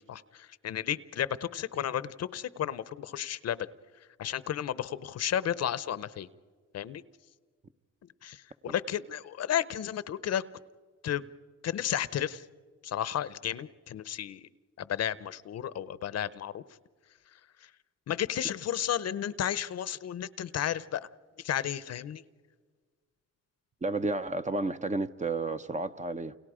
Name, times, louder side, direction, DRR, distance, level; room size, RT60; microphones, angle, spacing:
voice 1, 0.1-3.7 4.2-6.3 6.7-7.0 8.2-10.4 11.0-11.2 11.6-12.4 12.8-14.4 14.8-16.6 18.1-21.1 21.4-22.2, left 10 dB, 55° left, 17 dB, 0.8 m, -33 dB
voice 2, 23.8-26.4, right 2 dB, 25° right, 10 dB, 0.8 m, -31 dB
29.5 x 29.0 x 5.0 m, 1.5 s
cardioid pair, 90°, 30 cm